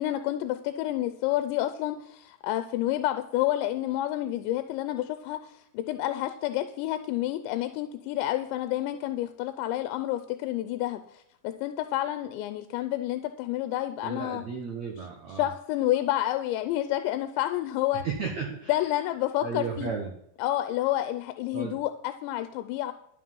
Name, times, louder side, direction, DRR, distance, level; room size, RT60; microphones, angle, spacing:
voice 1, 0.0-14.4 15.4-18.0 18.7-19.9 20.4-22.9, left 14 dB, 85° left, 10 dB, 2.9 m, -29 dB
voice 2, 14.0-15.5 17.9-18.8 19.4-20.2 21.5-21.8, right 5 dB, 90° right, 1 dB, 1.5 m, -34 dB
12.0 x 8.3 x 5.5 m, 0.75 s
omnidirectional pair, 5.1 m